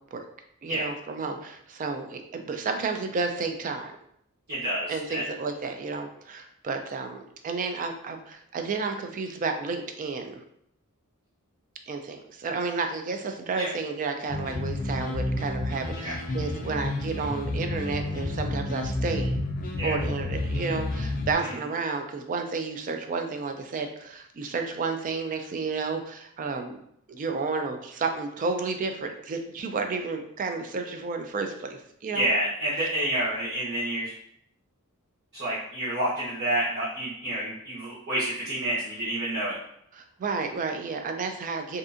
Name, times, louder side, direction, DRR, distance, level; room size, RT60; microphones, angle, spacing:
voice 1, 0.6-3.9 4.9-10.4 11.9-19.4 19.8-26.8 27.1-32.3 39.9-41.8, right 4 dB, 35° right, 5 dB, 0.3 m, -31 dB
voice 2, 4.5-5.2 13.6-13.7 16.0-16.1 19.7-19.9 21.4-21.5 32.1-34.1 35.3-39.5, right 1 dB, 55° right, -12 dB, 1.0 m, -29 dB
sound 1, 14.3-21.3, left 2 dB, 40° left, 0.4 m, -30 dB
2.6 x 2.4 x 2.4 m, 0.71 s
head